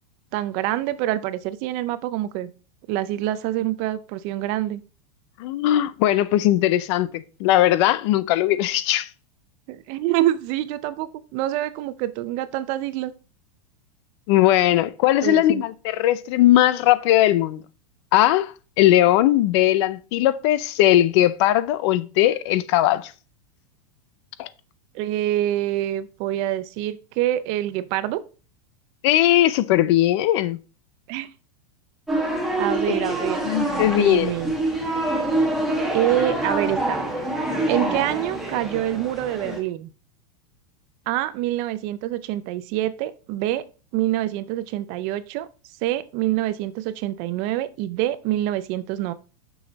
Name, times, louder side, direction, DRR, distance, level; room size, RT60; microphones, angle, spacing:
voice 1, 0.3-2.5 2.9-4.8 9.7-13.1 15.2-15.6 24.9-28.2 31.1-31.3 32.6-33.4 33.7-34.5 35.9-37.0 37.7-39.9 41.1-43.7 43.9-45.5 45.8-49.1, right 14 dB, 35° right, 0.5 m, -26 dB
voice 2, 5.4-9.1 14.3-17.6 18.1-18.5 18.8-23.1 24.4-24.5 29.0-30.6 32.9-33.0 33.4-34.3, left 13 dB, 45° left, 0.5 m, -19 dB
sound 1, 32.1-39.6, right 1 dB, ahead, 1.3 m, -26 dB
6.3 x 6.2 x 4.0 m
supercardioid pair, 155°, 20 cm